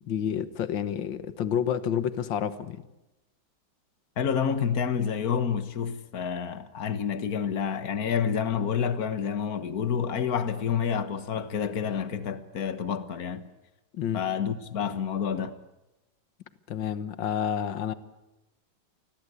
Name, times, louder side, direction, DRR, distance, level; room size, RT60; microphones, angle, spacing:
voice 1, 0.1-2.8 13.9-14.2 16.7-17.9, left 9 dB, 70° left, 1.9 m, -29 dB
voice 2, 4.2-13.4 14.1-15.6, left 7 dB, 50° left, 1.8 m, -28 dB
28.5 x 21.0 x 8.2 m
omnidirectional pair, 2.2 m